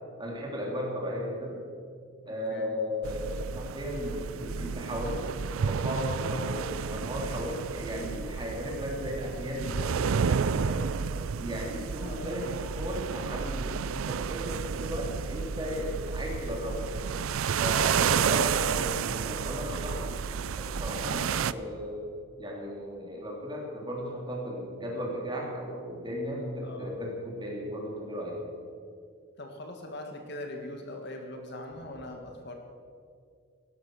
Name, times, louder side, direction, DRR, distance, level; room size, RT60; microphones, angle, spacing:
voice 1, 0.2-1.6 2.3-5.2 5.7-10.8 11.4-13.8 14.1-16.9 17.6-20.1 20.6-22.0 22.4-28.4, equal, 20° right, -2 dB, 3.3 m, -35 dB
voice 2, 2.2-2.7 12.0-12.3 18.1-18.5 21.0-21.4 26.6-26.9 29.4-32.5, left 1 dB, 50° left, 3 dB, 1.9 m, -41 dB
sound 1, 3.0-21.5, right 6 dB, 75° right, 0.4 m, -31 dB
16.5 x 12.5 x 6.3 m, 2.2 s
head